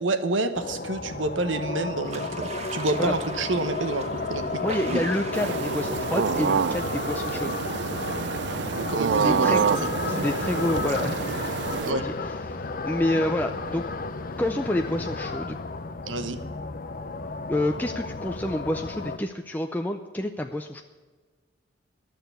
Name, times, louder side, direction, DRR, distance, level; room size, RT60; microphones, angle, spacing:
voice 1, 0.0-4.4 4.9-5.0 8.9-9.5 11.8-12.0 16.0-16.4, right 2 dB, 90° right, 9 dB, 1.1 m, -28 dB
sound 1, 0.5-19.2, left 3 dB, 50° left, 0.7 m, -33 dB
sound 2, 2.0-9.8, right 2 dB, 35° right, 1.1 m, -40 dB
voice 2, 4.6-7.5 9.2-9.6 10.1-12.1 12.5-13.9 14.4-15.6 17.5-20.8, left 1 dB, 10° left, 4 dB, 0.5 m, -28 dB
sound 3, 5.3-11.9, right 6 dB, 60° right, 0.4 m, -27 dB
12.0 x 6.6 x 9.2 m, 1.4 s
head